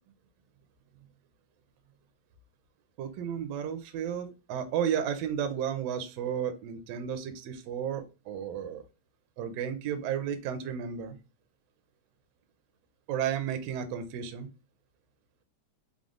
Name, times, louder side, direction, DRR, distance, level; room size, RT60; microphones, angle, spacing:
voice 1, 3.0-8.8 9.4-11.1 13.1-14.5, right 8 dB, 80° right, 7 dB, 1.5 m, -33 dB
4.8 x 2.0 x 3.6 m, 0.31 s
omnidirectional pair, 3.3 m